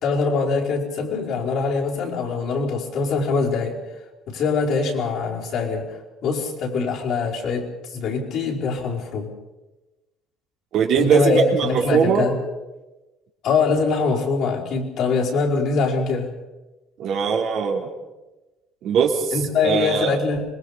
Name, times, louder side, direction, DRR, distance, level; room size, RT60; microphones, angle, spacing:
voice 1, 0.0-3.8 4.3-5.9 6.2-9.3 10.9-12.4 13.4-16.3 19.3-20.4, left 4 dB, 60° left, -3 dB, 5.0 m, -23 dB
voice 2, 10.7-12.3 17.0-17.9 18.8-19.4 19.6-20.2, right 7 dB, 60° right, 0 dB, 3.2 m, -20 dB
25.5 x 21.5 x 5.2 m, 1.1 s
cardioid pair, 135°, 0 cm